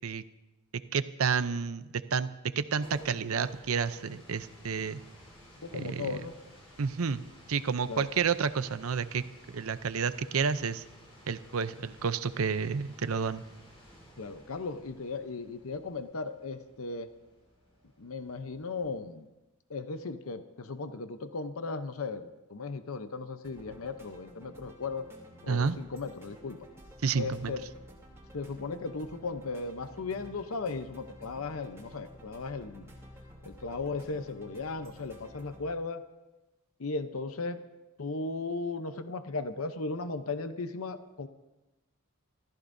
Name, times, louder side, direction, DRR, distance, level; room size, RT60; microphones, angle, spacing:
voice 1, 0.9-1.8 2.1-2.3 2.6-5.0 5.9-6.1 6.8-7.2 7.5-9.2 9.5-10.8 11.3-13.4 25.5-25.8 27.0-27.5, right 6 dB, 90° right, 13 dB, 0.6 m, -30 dB
sound 1, 2.5-19.2, equal, 30° left, 6.9 m, -55 dB
voice 2, 5.6-6.3 7.9-8.1 14.2-17.1 18.0-19.3 19.7-25.1 25.4-26.6 27.1-27.6 28.3-32.9 33.4-36.0 36.8-37.6 38.0-41.3, left 3 dB, 80° left, 9 dB, 0.8 m, -36 dB
sound 2, 23.4-35.7, equal, 15° right, 3.0 m, -52 dB
28.5 x 14.5 x 2.7 m, 1.0 s
head